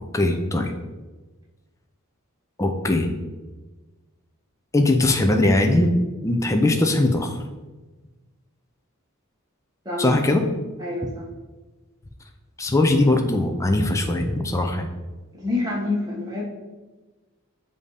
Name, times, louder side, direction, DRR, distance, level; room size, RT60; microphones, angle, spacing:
voice 1, 0.1-0.7 2.6-3.1 4.7-5.9 6.2-7.4 10.0-10.4 12.6-14.9, left 2 dB, 15° left, 4 dB, 0.4 m, -20 dB
voice 2, 10.8-11.3 15.3-16.4, left 2 dB, 15° right, -4 dB, 1.4 m, -27 dB
7.2 x 2.8 x 4.8 m, 1.2 s
head